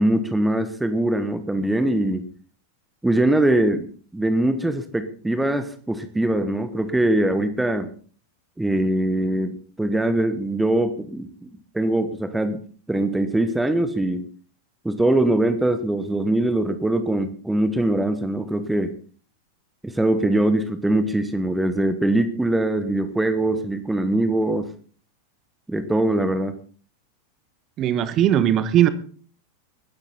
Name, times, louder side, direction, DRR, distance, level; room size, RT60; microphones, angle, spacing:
voice 1, 0.0-2.3 3.0-7.9 8.6-12.6 12.9-14.3 14.8-18.9 19.8-24.7 25.7-26.5, right 1 dB, 5° right, 10 dB, 1.2 m, -22 dB
voice 2, 27.8-28.9, right 11 dB, 35° right, 14 dB, 1.2 m, -18 dB
20.5 x 10.5 x 4.2 m, 0.43 s
figure-of-eight pair, 90°, 0 cm